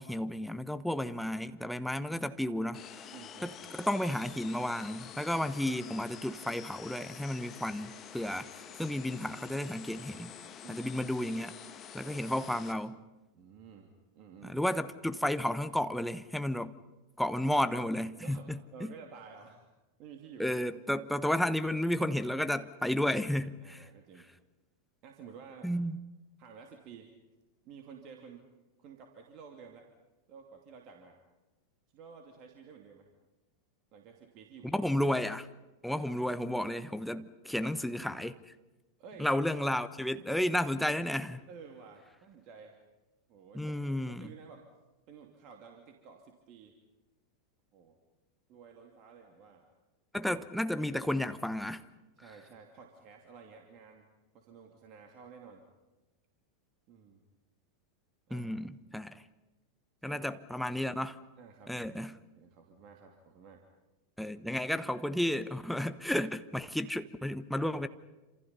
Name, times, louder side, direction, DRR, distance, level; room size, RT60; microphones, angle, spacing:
voice 1, 0.0-2.8 3.4-10.3 10.7-11.6 11.9-13.0 14.4-16.7 17.2-18.9 20.4-23.9 25.6-26.0 34.6-35.5 35.8-38.4 39.2-41.4 43.5-44.3 50.1-51.9 58.3-59.2 60.0-61.2 61.7-62.2 64.2-67.9, left 1 dB, ahead, 11 dB, 1.1 m, -32 dB
sound 1, 2.7-12.7, left 8 dB, 30° left, 2.0 m, -48 dB
voice 2, 3.1-3.9 8.6-8.8 10.6-11.0 12.0-12.3 13.3-13.9 14.1-14.6 17.4-17.6 18.2-19.7 20.0-20.5 23.6-24.3 25.0-25.7 26.4-27.1 27.6-28.4 28.8-29.9 30.3-31.2 31.9-33.1 33.9-34.9 37.5-38.0 39.0-39.3 41.5-42.8 43.3-44.7 45.1-46.7 47.7-48.0 48.5-49.7 50.1-50.3 52.2-54.0 54.3-55.6 56.9-57.2 58.3-58.5 60.0-60.2 60.5-60.7 61.4-61.7 62.3-63.6 67.5-67.7, right 6 dB, 40° right, 3 dB, 2.7 m, -52 dB
28.5 x 27.0 x 5.6 m, 1.1 s
figure-of-eight pair, 90°, 0 cm